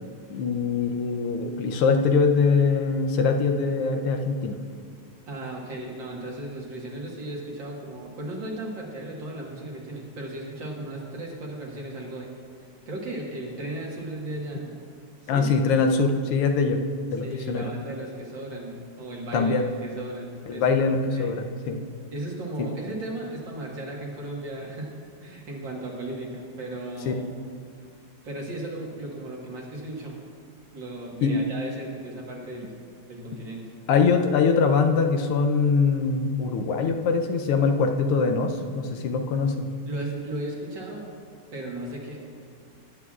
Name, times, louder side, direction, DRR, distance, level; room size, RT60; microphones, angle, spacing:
voice 1, 0.3-4.6 15.3-16.8 17.1-17.7 19.3-19.7 20.5-21.8 27.1-27.2 31.2-31.4 33.9-39.7, left 4 dB, 90° left, 5 dB, 1.6 m, -23 dB
voice 2, 5.3-12.3 12.9-14.7 15.2-15.5 17.2-19.6 19.8-20.8 21.1-21.4 22.1-24.9 25.2-27.3 28.2-30.2 30.7-32.7 33.1-33.7 39.9-41.0 41.5-42.2, right 1 dB, 60° right, -2 dB, 2.2 m, -35 dB
20.0 x 7.9 x 2.4 m, 2.1 s
omnidirectional pair, 2.4 m